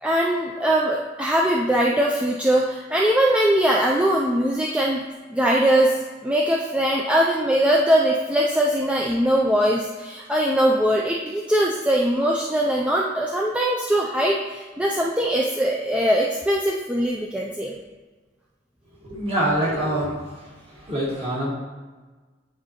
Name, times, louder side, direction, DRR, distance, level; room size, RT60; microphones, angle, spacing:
voice 1, 0.0-5.0 5.3-5.9 6.2-17.7, right 1 dB, 5° right, -2 dB, 0.4 m, -21 dB
voice 2, 19.0-20.5 20.8-21.5, right 1 dB, 30° right, -5 dB, 1.6 m, -25 dB
9.0 x 3.8 x 2.9 m, 1.3 s
head